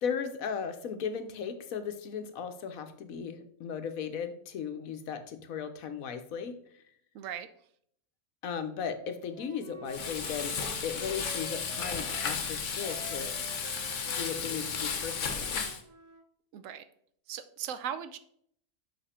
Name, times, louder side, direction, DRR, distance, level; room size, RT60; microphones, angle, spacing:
voice 1, 0.0-6.6 8.4-13.4 14.1-15.6, left 7 dB, 90° left, 8 dB, 1.3 m, -36 dB
voice 2, 7.1-7.5 16.5-16.8 17.3-18.2, right 9 dB, 75° right, 11 dB, 1.0 m, -38 dB
Wind instrument woodwind instrument, 9.3-12.3 12.8-16.3, right 2 dB, 50° right, 0.3 m, -48 dB
Frying (food), 9.9-15.8, left 6 dB, 65° left, 1.3 m, -34 dB
7.0 x 5.8 x 4.3 m, 0.65 s
omnidirectional pair, 1.4 m